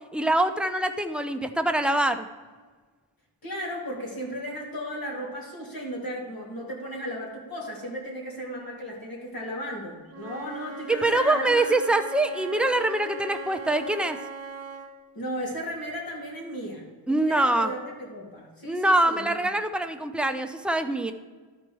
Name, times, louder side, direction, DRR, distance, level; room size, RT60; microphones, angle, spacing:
voice 1, 0.1-2.3 10.9-14.2 17.1-17.7 18.6-21.1, right 2 dB, ahead, 7 dB, 0.4 m, -24 dB
voice 2, 3.4-11.7 15.1-19.5, equal, 45° left, -2 dB, 2.6 m, -35 dB
Wind instrument woodwind instrument, 10.1-14.9, right 3 dB, 30° right, 1.2 m, -39 dB
12.5 x 4.3 x 4.6 m, 1.4 s
wide cardioid pair, 105°, 50 cm